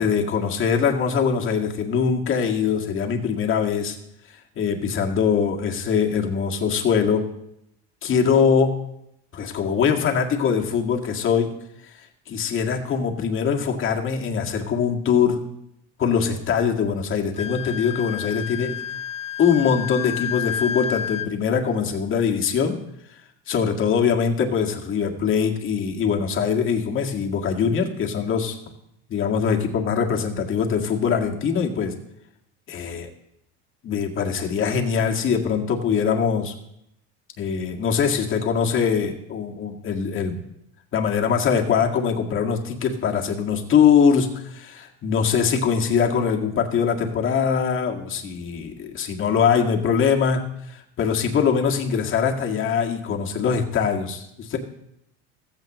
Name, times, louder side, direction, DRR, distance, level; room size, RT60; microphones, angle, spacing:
voice 1, 0.0-4.0 4.6-7.3 8.0-8.8 9.4-11.5 11.8-11.9 12.3-15.4 16.0-18.8 19.4-22.8 23.5-28.6 29.1-31.9 32.7-33.1 33.8-36.5 37.4-40.4 40.9-54.6, left 6 dB, 40° left, 2 dB, 1.9 m, -22 dB
Wind instrument woodwind instrument, 17.3-21.3, left 9 dB, 20° left, 0.4 m, -30 dB
15.5 x 15.0 x 3.1 m, 0.79 s
supercardioid pair, 130°, 33 cm